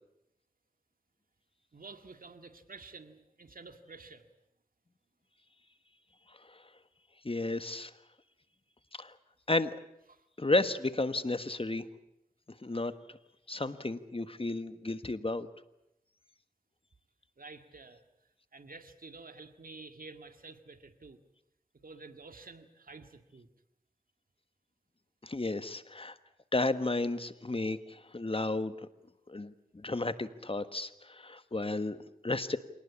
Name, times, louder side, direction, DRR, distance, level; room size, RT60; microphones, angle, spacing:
voice 1, 1.7-4.3 10.1-10.3 17.4-18.0 18.5-21.2 21.8-23.5, right 3 dB, 75° right, 8 dB, 2.0 m, -50 dB
voice 2, 7.2-7.9 9.0-9.1 9.5-9.8 10.4-11.8 12.6-12.9 13.5-15.5 25.2-26.2 26.5-28.7 29.3-32.6, left 2 dB, 40° left, 12 dB, 1.4 m, -32 dB
27.0 x 18.5 x 8.5 m, 0.84 s
cardioid pair, 40°, 15 cm